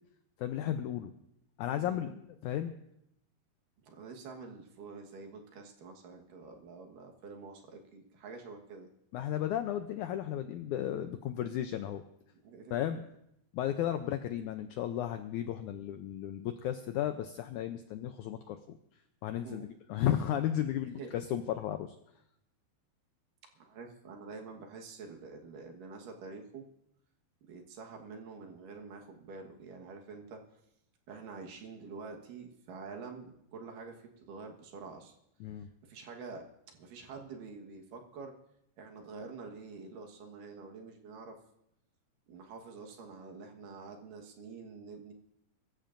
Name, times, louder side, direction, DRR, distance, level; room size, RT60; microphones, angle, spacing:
voice 1, 0.4-1.1 1.6-2.7 9.1-12.0 12.7-13.1 13.5-18.8 19.2-22.0 35.4-35.7, left 11 dB, 85° left, 8 dB, 1.7 m, -34 dB
voice 2, 1.7-2.1 3.8-8.9 12.4-12.8 17.7-17.9 19.4-19.8 21.0-21.1 23.6-26.6 27.5-30.4 31.1-35.1 35.9-38.3 38.8-41.4 42.3-45.1, right 4 dB, 70° right, 2 dB, 2.9 m, -47 dB
23.5 x 14.5 x 2.6 m, 0.79 s
omnidirectional pair, 4.2 m